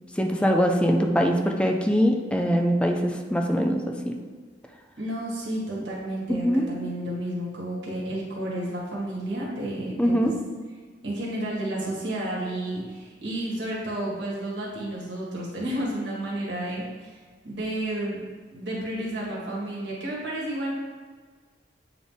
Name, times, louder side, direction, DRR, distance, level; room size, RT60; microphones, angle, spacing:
voice 1, 0.2-4.1 6.3-6.7 10.0-10.3, equal, 5° left, 2 dB, 0.5 m, -22 dB
voice 2, 5.0-10.3 11.0-17.2 17.4-18.2 18.5-20.7, right 1 dB, 90° right, -5 dB, 1.8 m, -31 dB
8.0 x 4.0 x 3.6 m, 1.5 s
head